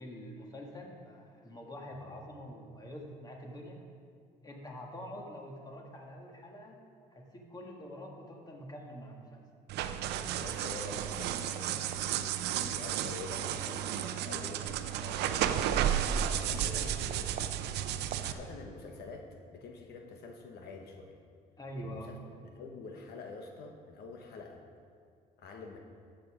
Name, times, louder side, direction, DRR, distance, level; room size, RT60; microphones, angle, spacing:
voice 1, 0.0-3.8 4.4-6.8 7.1-9.4 21.6-22.1, equal, 25° left, 0 dB, 1.9 m, -45 dB
sound 1, 9.7-18.3, right 10 dB, 80° right, 0.6 m, -33 dB
voice 2, 10.4-11.7 12.4-17.5 18.2-21.2 21.8-22.2 22.4-24.6 25.4-25.8, left 4 dB, 75° left, 3 dB, 1.2 m, -47 dB
13.5 x 7.8 x 5.0 m, 2.2 s
cardioid pair, 110°, 17 cm